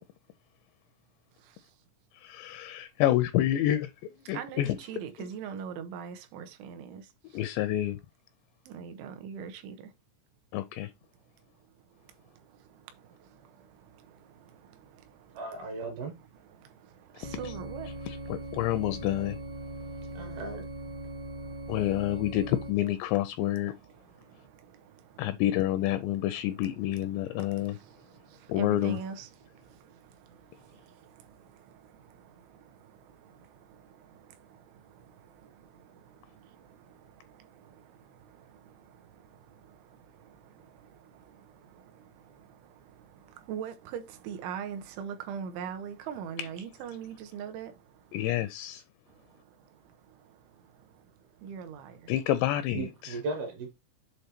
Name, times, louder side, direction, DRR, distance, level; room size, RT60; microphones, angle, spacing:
voice 1, 2.1-3.9 4.3-4.8 7.3-8.0 10.5-10.9 17.1-17.3 18.1-19.4 21.7-23.7 25.2-27.8 28.5-29.0 48.1-48.8 52.1-53.2, left 13 dB, 85° left, 2.6 m, -28 dB
voice 2, 4.3-7.1 8.7-9.9 14.1-14.2 14.5-15.0 16.6-16.7 17.1-17.9 18.4-18.6 19.6-20.0 20.3-20.6 21.1-21.8 24.4-25.2 26.6-27.0 27.4-29.4 29.7-30.0 30.3-32.6 33.2-33.4 33.7-34.6 34.9-36.9 37.2-39.4 39.7-39.8 40.2-47.7 51.4-52.0, right 7 dB, 85° right, 3.2 m, -43 dB
voice 3, 15.3-16.1 20.1-20.6 52.7-53.7, right 3 dB, 65° right, 2.7 m, -36 dB
sound 1, 17.2-22.7, right 1 dB, 45° right, 0.9 m, -40 dB
8.1 x 3.3 x 4.3 m
omnidirectional pair, 5.3 m